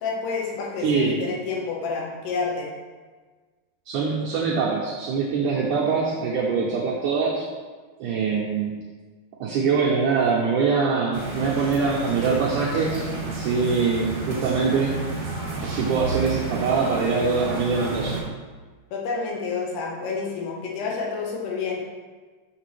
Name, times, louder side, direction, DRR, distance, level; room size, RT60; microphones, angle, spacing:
voice 1, 0.0-2.7 18.9-21.8, left 4 dB, 90° left, -2 dB, 3.2 m, -29 dB
voice 2, 0.8-1.2 3.9-7.5 8.0-8.7 9.4-15.0 15.6-18.2, right 5 dB, 80° right, -5 dB, 1.8 m, -23 dB
sound 1, 11.1-18.2, right 3 dB, 40° right, 2.0 m, -31 dB
6.7 x 6.6 x 3.2 m, 1.4 s
omnidirectional pair, 4.5 m